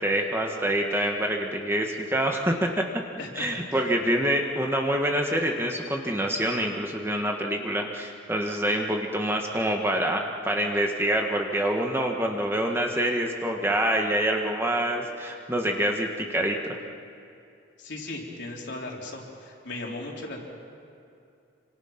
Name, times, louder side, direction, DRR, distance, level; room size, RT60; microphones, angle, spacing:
voice 1, 0.0-2.8 3.3-16.8, right 1 dB, 10° right, 2 dB, 1.6 m, -26 dB
voice 2, 3.2-3.8 17.8-20.4, left 2 dB, 60° left, -2 dB, 4.2 m, -37 dB
28.0 x 26.0 x 5.9 m, 2.6 s
head